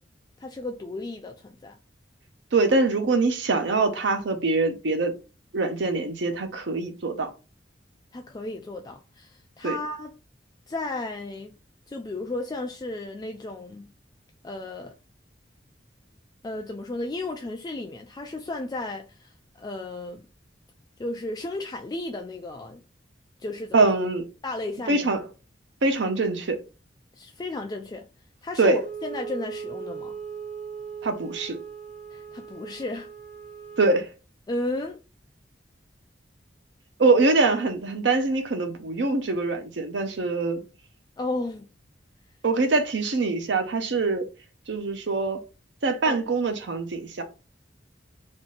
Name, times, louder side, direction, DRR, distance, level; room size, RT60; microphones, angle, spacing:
voice 1, 0.4-1.8 8.1-10.1 10.7-11.5 11.9-13.9 14.4-14.9 16.4-20.3 21.0-22.8 23.4-23.8 24.4-25.1 27.1-28.0 28.4-30.2 32.1-33.1 34.5-35.0 41.2-41.7 46.0-46.2, left 2 dB, 20° left, 0.3 m, -34 dB
voice 2, 2.5-5.1 5.5-7.3 9.6-9.8 23.7-24.3 24.9-25.2 25.8-26.6 28.6-28.8 31.0-31.6 33.8-34.1 37.0-40.6 42.4-44.2 44.7-45.4 45.8-47.2, right 3 dB, 75° right, 0.7 m, -23 dB
Wind instrument woodwind instrument, 28.7-34.0, right 6 dB, 45° right, 1.0 m, -39 dB
3.6 x 2.6 x 3.8 m
head